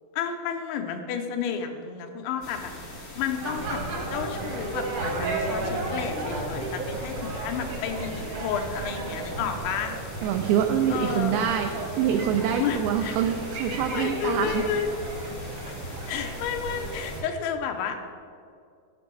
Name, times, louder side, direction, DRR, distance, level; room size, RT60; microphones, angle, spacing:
voice 1, 0.1-2.7 3.1-3.8 4.1-9.9 10.9-11.4 12.6-13.2 13.8-14.9 16.1-18.0, left 7 dB, 85° left, 5 dB, 3.0 m, -31 dB
sound 1, 2.4-17.2, left 1 dB, 45° left, 0.9 m, -42 dB
sound 2, 3.4-17.2, right 2 dB, 65° right, 1.5 m, -34 dB
voice 2, 10.2-14.6, right 9 dB, 90° right, 5 dB, 2.2 m, -25 dB
13.5 x 6.1 x 4.6 m, 2.3 s
omnidirectional pair, 5.1 m